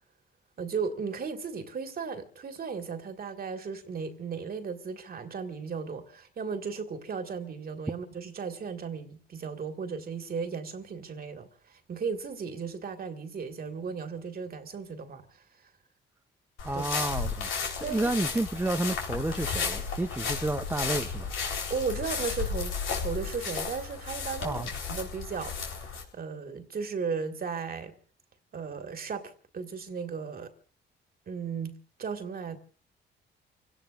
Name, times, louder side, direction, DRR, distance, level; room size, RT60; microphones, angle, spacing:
voice 1, 0.6-15.4 16.7-16.8 17.8-18.1 21.7-24.6 24.9-27.9 28.5-30.5 31.3-32.6, right 5 dB, 50° right, 2.1 m, -36 dB
sound 1, 16.6-26.0, left 5 dB, 80° left, 4.1 m, -33 dB
voice 2, 16.6-17.5 17.8-21.3 24.4-24.7, right 2 dB, 10° right, 0.9 m, -30 dB
29.5 x 17.5 x 2.6 m
cardioid pair, 90°, 20 cm